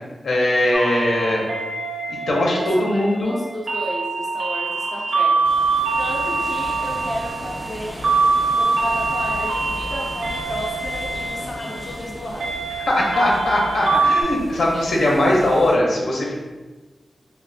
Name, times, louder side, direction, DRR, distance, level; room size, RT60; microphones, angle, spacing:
voice 1, 0.2-1.4 2.1-3.3 12.9-16.3, left 1 dB, 80° left, -3 dB, 0.7 m, -20 dB
sound 1, 0.7-14.2, right 4 dB, 70° right, 0.5 m, -24 dB
voice 2, 1.1-1.5 2.6-5.3 6.0-8.1 8.5-12.5, left 1 dB, 35° left, -4 dB, 0.4 m, -33 dB
sound 2, 5.4-15.7, equal, 20° right, 0.5 m, -36 dB
3.2 x 2.4 x 2.7 m, 1.3 s
wide cardioid pair, 165°, 0 cm